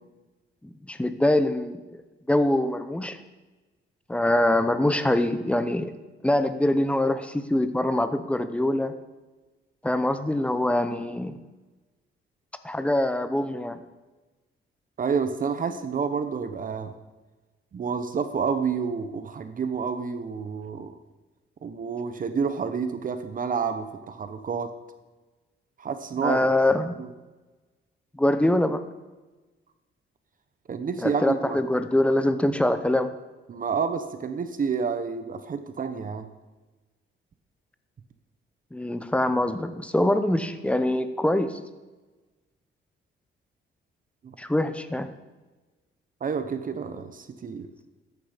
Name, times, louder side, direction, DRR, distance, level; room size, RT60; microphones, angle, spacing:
voice 1, 0.6-2.0 2.3-3.2 4.1-5.9 6.2-8.9 9.8-11.4 12.6-13.8 26.2-27.0 28.1-28.8 31.0-33.1 38.7-41.6 44.4-45.1, left 1 dB, 5° left, 10 dB, 0.9 m, -24 dB
voice 2, 15.0-16.9 17.7-21.0 21.6-24.7 25.8-26.4 27.0-27.1 30.7-31.6 33.5-36.3 44.2-44.3 46.2-47.7, right 6 dB, 40° right, 9 dB, 1.0 m, -29 dB
14.0 x 10.5 x 5.2 m, 1.2 s
cardioid pair, 135°, 21 cm